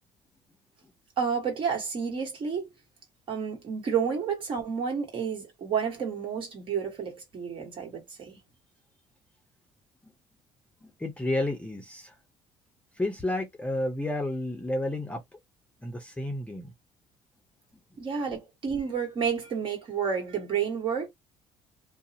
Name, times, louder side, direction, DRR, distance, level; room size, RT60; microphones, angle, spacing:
voice 1, 1.2-2.7 3.3-8.4 18.0-21.1, right 6 dB, 50° right, 1.3 m, -30 dB
voice 2, 10.8-12.1 13.0-15.2 15.8-16.7, left 1 dB, 10° left, 0.6 m, -31 dB
2.5 x 2.0 x 2.7 m
cardioid pair, 95°, 11 cm